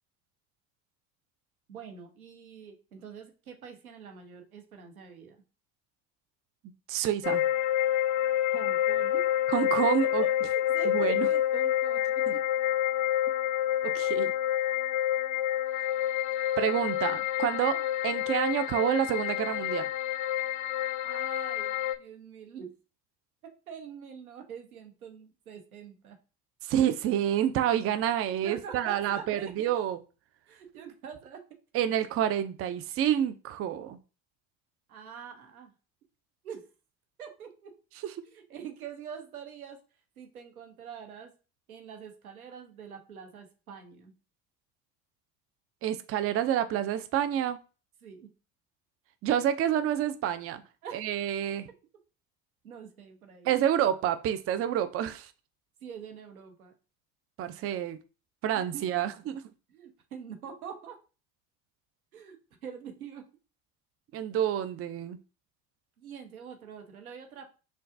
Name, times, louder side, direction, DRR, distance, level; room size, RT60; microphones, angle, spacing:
voice 1, 1.7-5.4 8.5-9.2 10.0-12.4 21.0-22.7 23.4-26.2 28.4-29.7 30.5-31.4 34.9-35.7 36.4-36.7 37.2-37.7 38.3-39.8 40.2-41.3 41.7-44.1 48.0-48.3 50.8-51.0 52.6-53.5 55.8-56.7 58.5-58.9 59.7-61.0 62.1-63.3 66.0-67.5, right 7 dB, 90° right, 1.0 m, -44 dB
voice 2, 6.9-7.4 9.5-10.2 10.9-11.3 12.3-12.4 13.8-14.3 16.6-19.9 26.6-30.0 31.7-34.0 38.0-38.1 45.8-47.6 49.2-50.6 50.9-51.7 53.4-55.3 57.4-58.0 58.4-59.4 64.1-65.2, right 10 dB, 35° right, 0.5 m, -28 dB
sound 1, 7.2-22.0, left 12 dB, 45° left, 0.6 m, -28 dB
5.7 x 2.4 x 2.6 m
hypercardioid pair, 65°, 42 cm